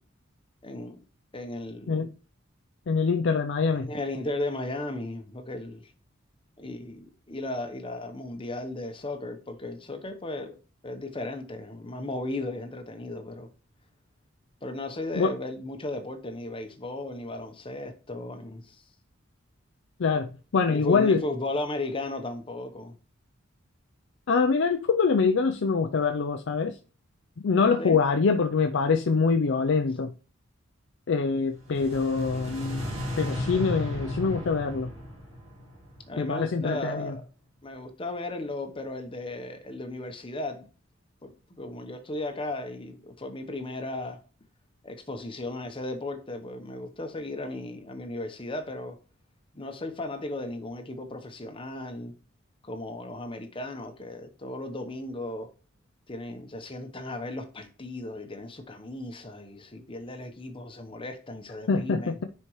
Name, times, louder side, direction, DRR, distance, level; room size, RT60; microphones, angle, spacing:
voice 1, 0.6-1.0 1.3-2.1 3.9-5.9 6.6-10.6 10.8-13.5 14.6-18.8 20.7-22.9 27.8-28.0 36.1-37.2 37.6-40.7 41.2-44.2 44.8-49.0 49.5-52.1 52.7-55.5 56.1-62.1, left 2 dB, 25° left, 0.9 m, -35 dB
voice 2, 2.9-3.9 15.1-15.3 20.0-21.2 24.3-26.8 27.4-30.1 31.1-32.8 33.2-34.9 36.2-37.1 61.7-62.2, left 5 dB, 60° left, 0.5 m, -24 dB
sound 1, 31.5-36.7, left 1 dB, 35° right, 3.6 m, -34 dB
9.8 x 4.4 x 3.1 m
head